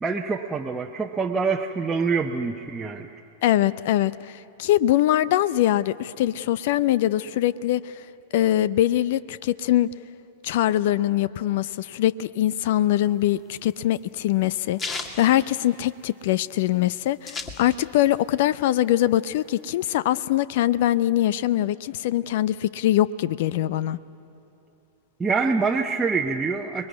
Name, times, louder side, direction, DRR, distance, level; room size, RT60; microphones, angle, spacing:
voice 1, 0.0-3.1 25.2-26.9, right 4 dB, 15° right, 0 dB, 1.1 m, -25 dB
voice 2, 3.4-7.9 8.3-9.9 10.4-24.0, left 13 dB, 55° left, 18 dB, 0.5 m, -23 dB
sound 1, 13.1-16.2 16.5-16.6 16.8-18.1 18.5-19.6, left 3 dB, 25° left, 2.4 m, -35 dB
30.0 x 21.0 x 9.5 m, 2.9 s
figure-of-eight pair, 95°, 0 cm